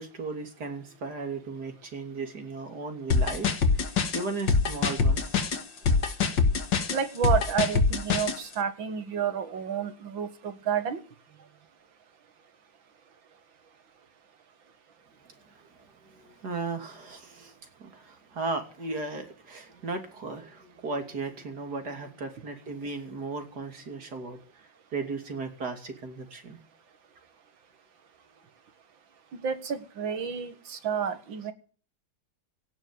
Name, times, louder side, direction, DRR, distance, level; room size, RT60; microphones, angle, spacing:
voice 1, 0.0-3.5 3.7-5.4 15.5-15.6 16.1-26.6, right 3 dB, 55° right, 5 dB, 3.5 m, -36 dB
sound 1, 3.1-8.4, left 4 dB, 70° left, 2.4 m, -24 dB
voice 2, 6.9-11.0 29.3-31.5, right 7 dB, 85° right, 10 dB, 2.4 m, -30 dB
17.5 x 7.3 x 9.2 m, 0.41 s
omnidirectional pair, 2.0 m